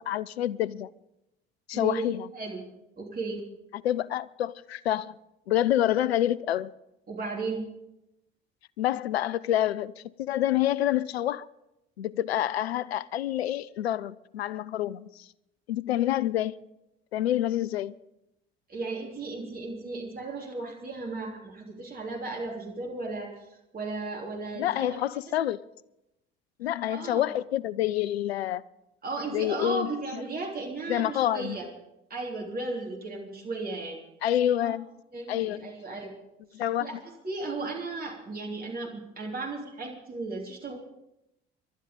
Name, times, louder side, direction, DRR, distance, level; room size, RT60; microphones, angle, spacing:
voice 1, 0.1-0.9 1.7-2.3 3.8-5.1 5.5-6.7 8.8-11.5 12.0-15.3 15.7-16.6 17.1-17.9 24.6-25.6 26.6-28.6 29.3-30.2 30.9-31.6 34.2-34.9 35.3-35.7 36.5-36.9, left 12 dB, 75° left, 0.5 m, -27 dB
voice 2, 1.7-2.0 2.3-2.6 3.0-3.4 7.1-7.7 18.7-23.3 23.7-25.0 26.9-27.2 29.0-31.7 32.1-34.0 34.6-34.7 35.1-36.1 36.5-37.0 37.2-40.8, right 3 dB, 30° right, 3.3 m, -35 dB
26.0 x 12.0 x 3.7 m
figure-of-eight pair, 55°, 31 cm